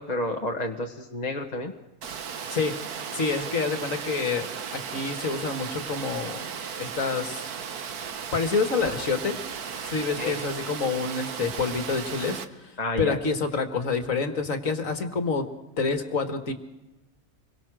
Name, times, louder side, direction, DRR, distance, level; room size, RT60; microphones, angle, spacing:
voice 1, 0.0-1.7 10.2-10.4 12.8-13.2, left 2 dB, 30° left, 2 dB, 1.5 m, -30 dB
Water, 2.0-12.4, right 7 dB, 90° right, 1.7 m, -36 dB
voice 2, 3.1-4.5 4.9-6.4 6.8-7.4 8.3-9.4 9.8-15.5 15.8-16.5, left 4 dB, 60° left, 8 dB, 2.2 m, -27 dB
27.0 x 22.5 x 6.3 m, 1.0 s
omnidirectional pair, 1.6 m